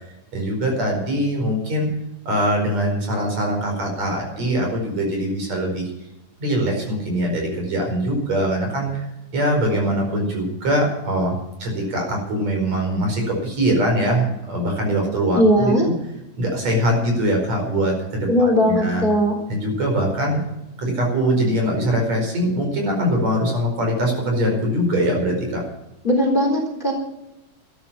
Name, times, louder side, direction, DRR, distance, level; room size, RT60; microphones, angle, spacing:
voice 1, 0.3-1.9 2.3-5.9 6.4-9.1 9.3-11.3 11.6-15.7 16.4-19.0 19.5-20.4 20.8-25.6, equal, 60° right, 1 dB, 6.1 m, -22 dB
voice 2, 15.3-15.9 18.3-19.4 26.0-26.9, equal, 15° left, 2 dB, 3.7 m, -18 dB
13.5 x 11.5 x 7.3 m, 0.92 s
omnidirectional pair, 3.5 m